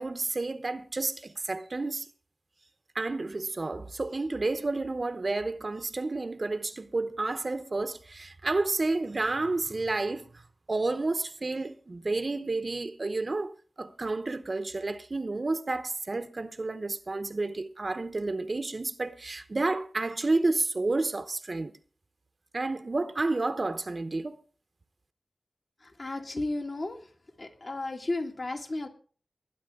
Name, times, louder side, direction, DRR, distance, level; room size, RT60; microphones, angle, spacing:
voice 1, 0.0-2.1 2.9-10.4 10.7-21.7 22.5-24.4, right 3 dB, 45° right, 0.8 m, -30 dB
voice 2, 25.8-27.1 27.4-28.9, left 2 dB, 50° left, 2.0 m, -34 dB
20.5 x 10.0 x 3.6 m
wide cardioid pair, 85°, 0 cm